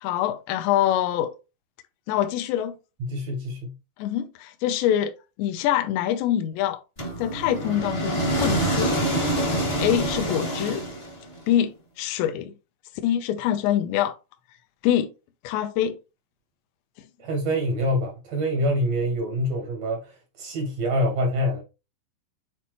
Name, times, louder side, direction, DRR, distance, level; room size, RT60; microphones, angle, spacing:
voice 1, 0.0-1.3 2.1-2.8 4.0-5.1 5.4-6.8 7.2-8.9 9.8-10.8 11.5-12.5 13.0-14.2 14.8-15.1 15.4-16.0, left 11 dB, 85° left, 2.9 m, -24 dB
voice 2, 3.0-3.7 17.2-21.6, equal, 85° right, 1.5 m, -26 dB
sound 1, 7.0-11.4, right 1 dB, 45° left, 0.7 m, -26 dB
8.4 x 4.2 x 3.1 m
omnidirectional pair, 5.1 m